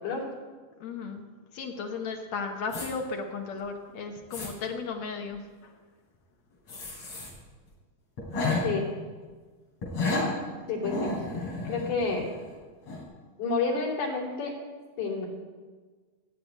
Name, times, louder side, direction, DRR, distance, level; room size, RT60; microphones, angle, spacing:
voice 1, 0.8-1.2 1.5-5.7, left 4 dB, 70° left, 3 dB, 1.7 m, -35 dB
sound 1, 2.7-2.9 3.6-3.7 4.2-4.5 6.7-7.3 7.7-7.8 8.2-8.6 9.8-10.3 10.8-12.5 12.9-13.0, left 3 dB, 45° left, 4.9 m, -31 dB
voice 2, 10.7-11.1 11.6-12.3 13.4-14.5 15.0-15.3, left 4 dB, 90° left, -2 dB, 4.7 m, -29 dB
14.5 x 6.8 x 9.1 m, 1.4 s
omnidirectional pair, 4.3 m